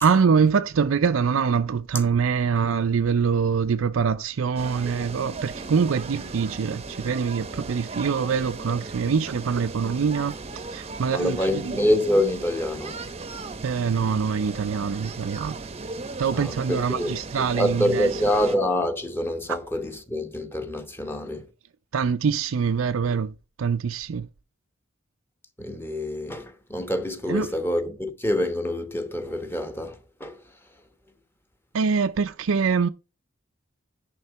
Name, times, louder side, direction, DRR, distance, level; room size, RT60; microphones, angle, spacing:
voice 1, 0.0-10.4 10.7-11.7 13.6-15.5 16.2-18.1 19.5-19.6 21.9-23.3 23.6-24.3 27.3-27.5 31.7-32.9, right 6 dB, 85° right, 0.5 m, -24 dB
sound 1, 4.6-18.6, right 3 dB, 30° right, 0.7 m, -37 dB
voice 2, 11.1-13.0 16.3-21.5 25.6-30.4, left 1 dB, 10° left, 1.1 m, -26 dB
11.0 x 3.8 x 4.6 m
head